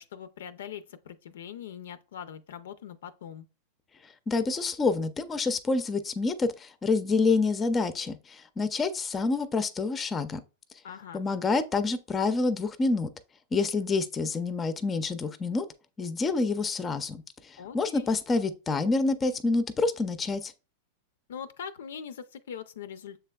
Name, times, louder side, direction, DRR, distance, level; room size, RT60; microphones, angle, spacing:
voice 1, 0.0-3.5 10.8-11.2 17.6-18.1 21.3-23.2, left 8 dB, 85° left, 0.4 m, -42 dB
voice 2, 4.3-10.4 11.1-13.1 13.5-15.7 16.0-20.5, left 3 dB, 20° left, 0.4 m, -27 dB
6.8 x 3.3 x 2.2 m
supercardioid pair, 135°, 0 cm